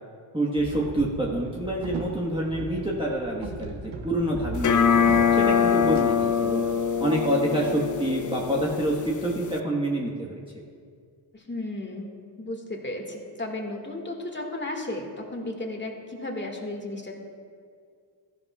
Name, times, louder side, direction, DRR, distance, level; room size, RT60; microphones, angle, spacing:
voice 1, 0.3-6.6 7.0-10.4, right 1 dB, 10° right, -5 dB, 1.4 m, -27 dB
sound 1, 0.6-6.0, right 3 dB, 55° right, 1.4 m, -37 dB
sound 2, 4.6-9.6, left 7 dB, 40° left, 0.6 m, -23 dB
voice 2, 11.3-12.1 12.4-17.1, left 1 dB, 20° left, 2 dB, 1.9 m, -34 dB
14.0 x 11.5 x 2.4 m, 2.1 s
cardioid pair, 70°, 49 cm